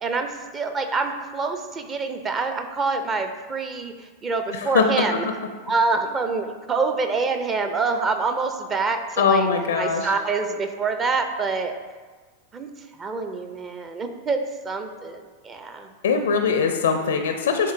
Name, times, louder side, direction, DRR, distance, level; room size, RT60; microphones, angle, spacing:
voice 1, 0.0-5.3 5.7-11.7 12.5-15.9, right 4 dB, 25° right, 7 dB, 0.6 m, -26 dB
voice 2, 9.2-10.1 16.0-17.7, left 6 dB, 65° left, 5 dB, 0.5 m, -21 dB
10.0 x 3.7 x 2.6 m, 1.4 s
figure-of-eight pair, 90°, 0 cm